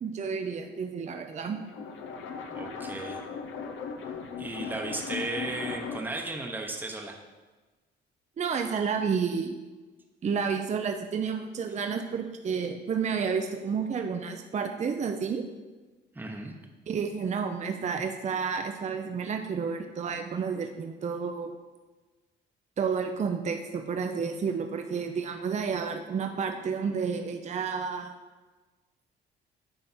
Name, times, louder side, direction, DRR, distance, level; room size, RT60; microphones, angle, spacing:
voice 1, 0.0-1.6 8.4-9.6 10.2-15.5 16.9-21.5 22.8-28.1, right 6 dB, 35° right, 5 dB, 0.5 m, -30 dB
sound 1, 1.3-6.2, left 5 dB, 80° left, 0.7 m, -38 dB
voice 2, 2.5-3.2 4.4-7.2 16.1-16.5, right 2 dB, 10° right, 1 dB, 0.9 m, -35 dB
9.5 x 3.4 x 4.2 m, 1.3 s
cardioid pair, 90°, 20 cm